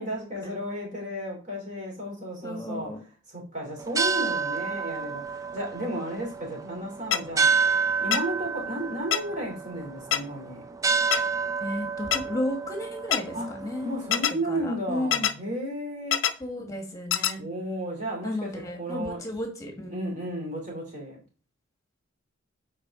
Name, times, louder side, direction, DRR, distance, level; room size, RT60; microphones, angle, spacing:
voice 1, 0.0-10.6 13.3-13.5 13.8-16.2 17.3-19.3 19.9-21.2, equal, 35° right, 3.2 m, -33 dB
voice 2, 2.4-3.0 11.6-13.9 14.5-15.3 16.4-17.4 18.2-19.9, left 1 dB, 15° left, 1.5 m, -33 dB
sound 1, 3.8-14.3, right 5 dB, 15° right, 0.3 m, -29 dB
sound 2, 7.1-7.2 8.1-8.2 9.1-9.2 10.1-10.2 11.1-11.2 12.1-12.2 13.1-13.2 14.1-14.3 15.1-15.3 16.1-16.3 17.1-17.3, left 10 dB, 65° left, 0.6 m, -23 dB
8.7 x 4.5 x 3.7 m
head